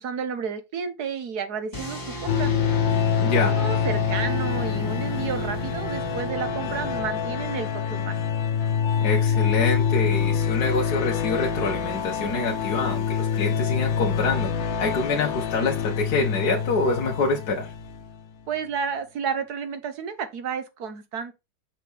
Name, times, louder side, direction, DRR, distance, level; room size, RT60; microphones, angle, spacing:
voice 1, 0.0-2.5 3.2-8.2 18.5-21.4, right 6 dB, 60° right, 1.4 m, -31 dB
sound 1, 1.7-7.6, right 2 dB, 10° left, 2.3 m, -35 dB
sound 2, 2.3-18.2, left 7 dB, 75° left, 1.6 m, -26 dB
voice 2, 3.2-3.6 9.0-17.7, left 3 dB, 55° left, 1.7 m, -26 dB
5.9 x 5.7 x 3.4 m
omnidirectional pair, 2.1 m